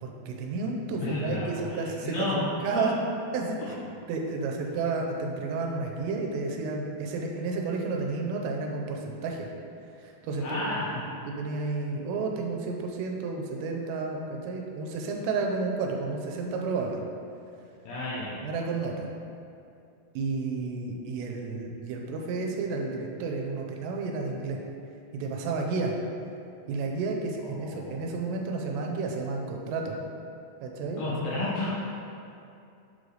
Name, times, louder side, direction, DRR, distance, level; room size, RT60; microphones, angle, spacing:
voice 1, 0.0-2.9 3.3-3.7 4.1-9.5 10.0-10.6 11.3-17.0 18.4-19.1 20.2-24.6 25.1-25.9 26.7-30.0 30.6-31.1, right 3 dB, 90° right, 1 dB, 2.8 m, -31 dB
voice 2, 1.0-2.4 2.7-2.8 3.6-3.7 10.4-10.9 17.9-18.3 27.4-27.9 31.0-31.7, left 2 dB, 75° left, -7 dB, 2.1 m, -32 dB
7.6 x 3.2 x 3.9 m, 2.6 s
omnidirectional pair, 4.9 m